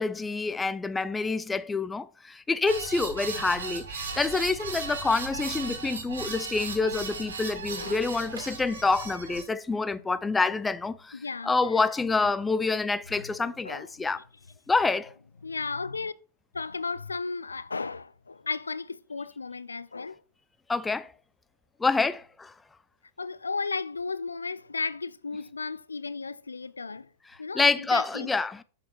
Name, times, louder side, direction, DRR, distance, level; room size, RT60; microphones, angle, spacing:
voice 1, 0.0-11.2 11.4-14.2 14.7-15.1 20.7-21.1 21.8-22.5 27.5-28.6, left 3 dB, 10° left, 0.4 m, -27 dB
sound 1, 2.7-9.4, right 4 dB, 75° right, 1.9 m, -36 dB
voice 2, 7.8-8.4 10.4-10.6 11.1-11.8 13.2-14.2 15.4-16.1 16.5-20.2 23.2-27.1 27.4-28.3, left 4 dB, 85° left, 0.3 m, -35 dB
7.1 x 5.1 x 4.3 m
figure-of-eight pair, 100°, 0 cm